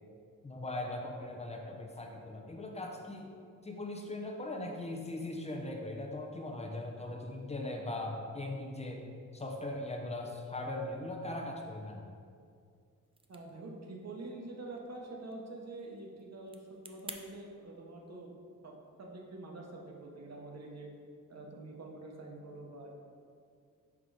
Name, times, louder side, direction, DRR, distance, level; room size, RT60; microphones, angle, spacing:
voice 1, 0.4-3.3 3.6-9.0 9.3-12.1, left 2 dB, 20° left, 1 dB, 0.7 m, -39 dB
sound 1, 13.0-17.2, right 3 dB, 20° right, 0.4 m, -53 dB
voice 2, 13.3-18.4 18.6-18.7 19.0-20.9 21.3-22.9, right 2 dB, 55° right, 0 dB, 1.0 m, -46 dB
6.0 x 3.8 x 4.8 m, 2.3 s
wide cardioid pair, 130°, 31 cm